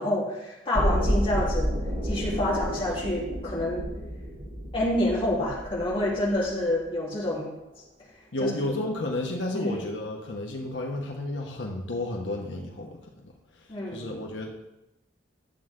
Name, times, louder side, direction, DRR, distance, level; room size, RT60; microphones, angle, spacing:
voice 1, 0.0-1.8 2.0-3.9 4.7-7.5 8.4-8.5 9.5-9.7 13.7-14.1, left 1 dB, 30° left, -6 dB, 3.2 m, -28 dB
sound 1, 0.7-6.7 7.0-7.1, equal, 45° right, 3.8 m, -30 dB
voice 2, 8.3-14.5, left 1 dB, 80° left, 0 dB, 1.3 m, -32 dB
12.0 x 7.7 x 3.7 m, 0.94 s
head